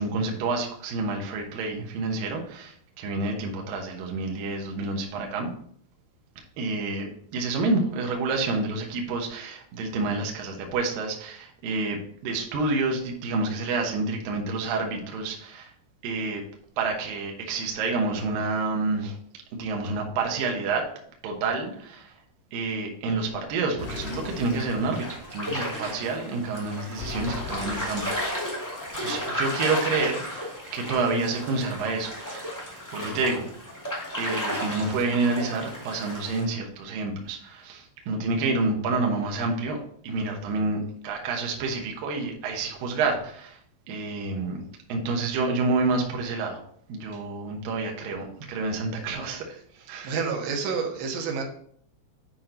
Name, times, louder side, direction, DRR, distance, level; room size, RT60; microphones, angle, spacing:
voice 1, 0.0-5.5 6.6-15.7 16.0-16.4 16.8-19.2 19.5-20.9 21.2-22.2 22.5-28.4 29.0-32.5 32.9-33.5 34.2-39.8 40.0-40.8 41.0-43.6 43.9-44.6 44.9-46.6 46.9-49.6 49.9-50.1, right 3 dB, 90° right, 1 dB, 1.9 m, -28 dB
sound 1, 23.8-25.2 27.0-28.4, left 6 dB, 85° left, 3.9 m, -39 dB
sound 2, 23.8-36.4, equal, 25° left, 0.4 m, -34 dB
voice 2, 49.8-51.4, right 5 dB, 75° right, 2 dB, 2.9 m, -29 dB
8.6 x 4.4 x 3.8 m, 0.62 s
omnidirectional pair, 5.8 m